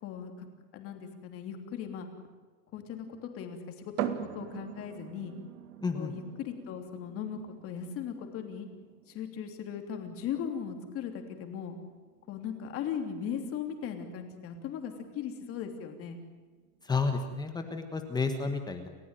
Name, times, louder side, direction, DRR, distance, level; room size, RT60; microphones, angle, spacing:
voice 1, 0.0-0.5 0.7-2.1 2.7-5.3 5.9-8.7 9.1-11.8 12.3-16.2, left 8 dB, 30° left, 5 dB, 3.1 m, -38 dB
sound 1, 4.0-17.5, right 12 dB, 65° right, 2.1 m, -45 dB
voice 2, 5.8-6.1 16.8-18.9, left 4 dB, 10° left, 6 dB, 1.3 m, -31 dB
29.5 x 15.0 x 9.1 m, 1.4 s
supercardioid pair, 170°, 45 cm